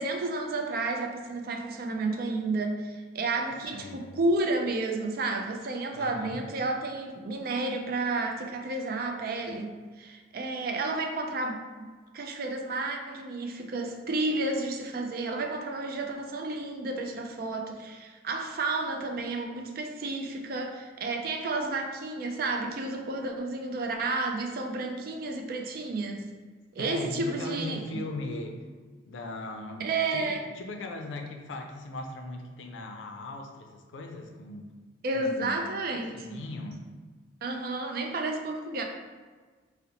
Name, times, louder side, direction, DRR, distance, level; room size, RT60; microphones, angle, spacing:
voice 1, 0.0-11.6 12.1-26.3 26.7-28.0 29.8-30.5 35.0-36.4 37.4-38.8, right 2 dB, 50° right, 3 dB, 0.4 m, -31 dB
voice 2, 3.7-4.1 5.9-6.4 26.8-28.6 29.1-34.7 35.1-35.6 35.9-36.9, left 2 dB, 80° left, 4 dB, 0.4 m, -39 dB
3.8 x 2.0 x 2.8 m, 1.4 s
head